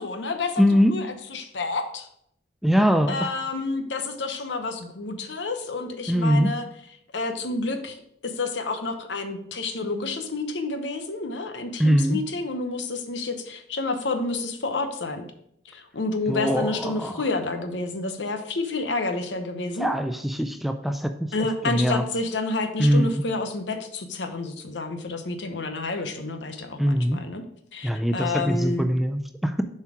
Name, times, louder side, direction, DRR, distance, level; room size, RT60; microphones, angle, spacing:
voice 1, 0.0-0.6 0.9-2.1 3.1-6.6 7.1-8.0 8.2-15.2 15.6-19.9 21.3-27.4 27.7-28.9, left 3 dB, 80° left, 7 dB, 0.9 m, -29 dB
voice 2, 0.6-0.9 2.6-3.3 6.1-6.5 11.8-12.2 16.3-17.2 19.8-21.3 21.6-22.0 22.8-23.2 26.8-27.2 27.8-29.6, equal, ahead, 7 dB, 0.3 m, -22 dB
7.1 x 4.5 x 4.7 m, 0.74 s
head